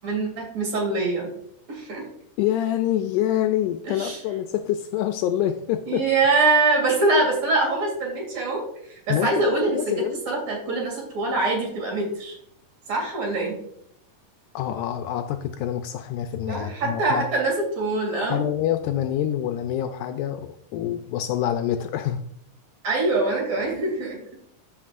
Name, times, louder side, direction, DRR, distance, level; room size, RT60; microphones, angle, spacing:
voice 1, 0.0-1.3 1.7-2.0 3.9-4.2 5.9-12.4 12.9-13.6 16.5-18.4 22.8-24.2, right 3 dB, 55° right, -1 dB, 3.8 m, -24 dB
voice 2, 2.4-6.0 9.1-9.4 9.7-10.2 14.6-17.3 18.3-22.2, left 11 dB, 80° left, 7 dB, 1.9 m, -26 dB
14.5 x 5.9 x 2.5 m, 0.73 s
omnidirectional pair, 3.8 m